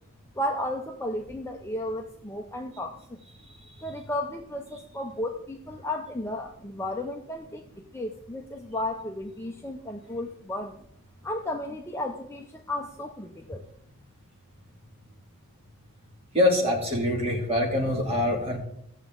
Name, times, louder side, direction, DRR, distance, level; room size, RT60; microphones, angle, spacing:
voice 1, 0.3-3.2 3.8-10.8 11.2-13.7, left 1 dB, 10° left, 2 dB, 0.6 m, -34 dB
voice 2, 16.3-18.6, left 1 dB, 25° right, -1 dB, 2.4 m, -24 dB
16.5 x 7.0 x 3.8 m, 0.74 s
head